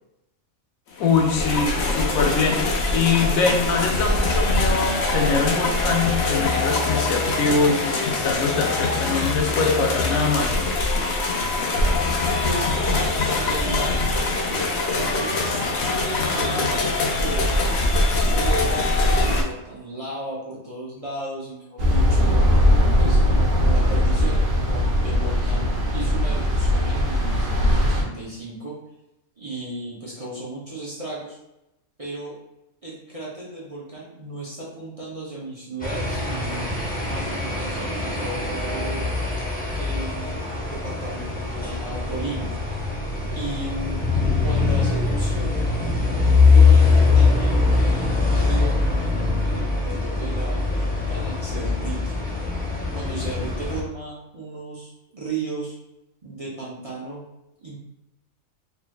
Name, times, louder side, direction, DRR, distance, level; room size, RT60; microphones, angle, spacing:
voice 1, 1.0-10.6, left 4 dB, 85° left, 2 dB, 1.1 m, -23 dB
sound 1, 1.0-19.4, left 2 dB, 60° left, 0.8 m, -23 dB
voice 2, 12.4-14.0 14.3-22.5 22.9-28.8 29.4-31.4 32.0-32.4 32.8-36.7 37.0-39.1 39.7-42.5 43.3-44.0 44.4-45.7 46.5-52.1 52.9-55.8 56.2-57.2 57.6-57.8, right 2 dB, 35° right, -6 dB, 0.6 m, -35 dB
sound 2, 21.8-28.0, left 1 dB, 75° right, 1.4 m, -19 dB
sound 3, 35.8-53.8, left 4 dB, 10° left, 0.4 m, -22 dB
4.4 x 3.1 x 2.3 m, 0.90 s
omnidirectional pair, 1.4 m